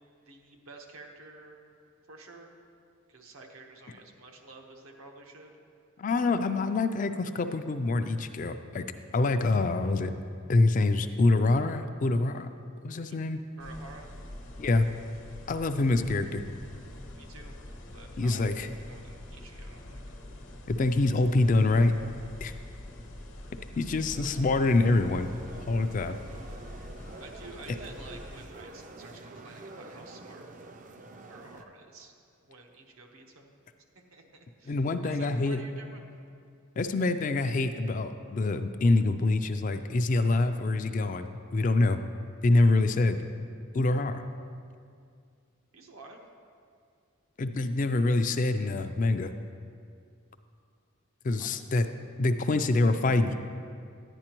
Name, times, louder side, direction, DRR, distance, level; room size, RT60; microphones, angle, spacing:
voice 1, 0.3-1.6 2.1-2.5 3.1-5.5 13.1-13.2 13.6-14.1 16.7-16.8 17.2-17.5 17.9-20.0 27.2-30.4 31.3-32.1 32.4-33.5 33.9-36.1 42.6-42.8 45.7-46.2 51.4-51.5, right 3 dB, 90° right, 2 dB, 1.0 m, -50 dB
voice 2, 6.0-8.8 9.1-10.1 10.5-12.5 12.8-13.4 14.6-14.9 15.5-16.4 18.2-18.7 20.7-21.9 22.4-22.5 23.8-25.3 25.7-26.2 34.7-35.6 36.8-42.0 42.4-43.2 43.7-44.2 47.4-49.3 51.2-51.9 52.2-53.3, left 2 dB, 40° left, 9 dB, 0.3 m, -25 dB
sound 1, 13.6-28.5, left 1 dB, 70° left, 0.9 m, -45 dB
sound 2, 24.1-31.6, right 2 dB, 40° right, 0.4 m, -47 dB
10.5 x 9.8 x 3.0 m, 2.3 s
head